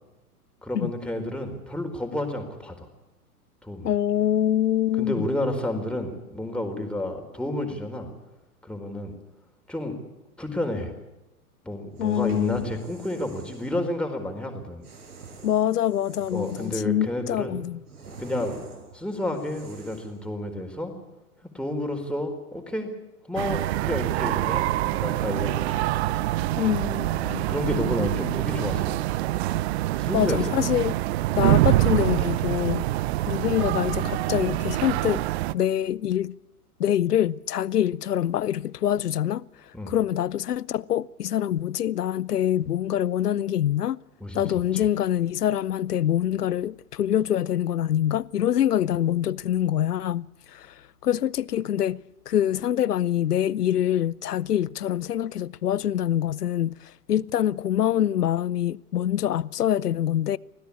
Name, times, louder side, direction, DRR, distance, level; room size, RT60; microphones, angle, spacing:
voice 1, 0.6-2.9 3.6-3.9 5.0-8.1 8.6-9.1 9.7-10.0 10.4-10.9 11.6-14.8 16.3-17.5 18.2-18.6 18.9-20.9 21.4-22.9 23.3-25.9 27.2-29.0 30.0-30.4 39.7-39.9 44.2-44.4 44.7-44.8, left 1 dB, ahead, 4.3 m, -30 dB
voice 2, 3.8-5.3 12.0-12.6 15.4-17.8 26.6-27.5 30.1-31.0 31.3-32.8 33.3-35.2 35.5-36.3 36.8-39.4 39.9-44.0 44.3-50.7 51.0-52.0 52.3-60.4, left 11 dB, 80° left, 0.7 m, -25 dB
sound 1, 11.9-13.8 14.8-16.9 17.3-20.2, right 4 dB, 80° right, 5.8 m, -46 dB
sound 2, 23.4-35.5, right 16 dB, 45° right, 0.7 m, -25 dB
24.5 x 16.5 x 8.5 m
hypercardioid pair, 110°, 46 cm